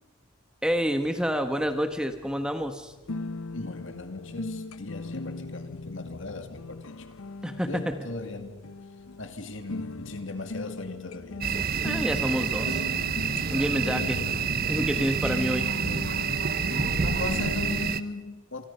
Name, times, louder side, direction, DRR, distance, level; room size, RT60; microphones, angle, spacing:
sound 1, 0.6-17.9, left 3 dB, 80° left, 0.8 m, -39 dB
voice 1, 0.6-2.9 7.4-7.9 11.8-12.9 13.5-14.2 14.7-15.7, equal, 5° right, 1.2 m, -28 dB
voice 2, 3.5-7.1 7.6-8.6 9.2-11.5 13.5-14.4 16.7-18.7, left 2 dB, 60° left, 2.3 m, -38 dB
sound 2, 11.4-18.0, right 6 dB, 45° right, 0.9 m, -28 dB
28.0 x 25.0 x 5.6 m
head